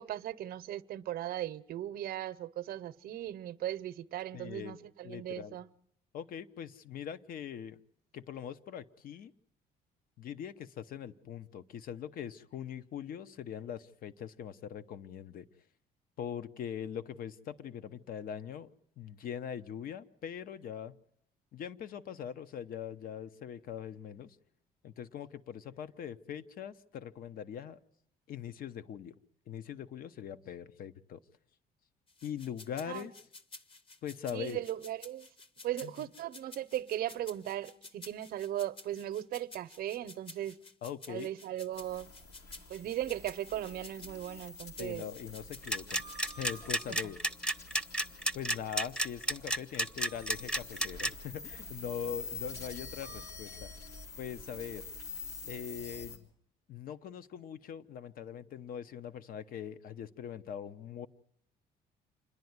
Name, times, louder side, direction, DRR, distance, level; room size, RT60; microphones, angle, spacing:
voice 1, 0.0-5.7 32.9-33.1 34.3-35.3 35.6-40.6 41.1-42.1 42.7-45.0 46.9-47.0, right 12 dB, 65° right, 0.7 m, -38 dB
voice 2, 4.3-4.8 5.0-5.6 6.1-7.8 8.1-9.3 10.2-15.5 16.2-18.7 19.0-20.9 21.5-24.4 24.8-27.8 28.3-29.1 29.5-31.2 32.2-33.1 34.0-34.6 35.8-36.1 40.8-41.3 44.8-47.2 48.3-53.7 54.2-54.9 55.5-56.3 56.7-61.1, left 8 dB, 60° left, 0.8 m, -42 dB
sound 1, 32.1-46.5, left 3 dB, 30° left, 1.0 m, -52 dB
sound 2, 41.7-56.2, left 3 dB, 80° left, 3.1 m, -47 dB
sound 3, 45.6-51.1, right 1 dB, 5° left, 0.7 m, -31 dB
27.0 x 10.5 x 9.5 m
cardioid pair, 110°, 17 cm